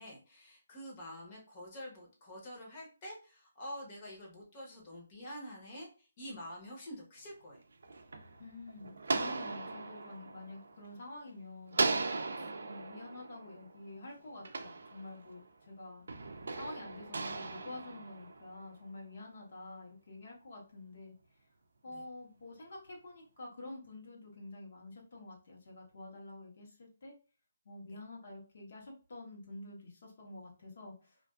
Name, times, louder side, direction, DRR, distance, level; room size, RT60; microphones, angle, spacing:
voice 1, 0.0-7.6 12.4-12.5 21.9-22.0 27.9-28.0, equal, 25° left, -2 dB, 0.9 m, -47 dB
sound 1, 7.5-11.3 11.7-15.5 16.1-18.7, right 3 dB, 70° right, 0.4 m, -38 dB
voice 2, 8.4-11.8 12.6-16.1 16.5-21.1 21.8-27.1 27.6-31.2, left 2 dB, 55° left, -1 dB, 1.1 m, -48 dB
2.5 x 2.4 x 2.3 m, 0.36 s
hypercardioid pair, 170°, 0 cm